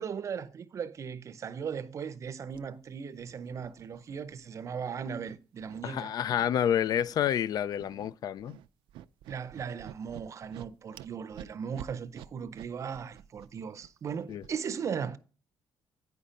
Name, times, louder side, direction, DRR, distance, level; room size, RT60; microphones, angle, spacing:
voice 1, 0.0-6.1 9.3-15.2, right 7 dB, 35° right, 0.6 m, -37 dB
sound 1, 2.5-2.6 3.2-4.7 5.0-5.8 6.3-6.5 6.9-7.3 7.6-8.1 8.4-14.6, right 13 dB, 90° right, 0.4 m, -49 dB
voice 2, 5.8-8.6 14.3-14.4, left 10 dB, 50° left, 0.4 m, -29 dB
9.4 x 5.5 x 5.1 m
cardioid pair, 150°, 8 cm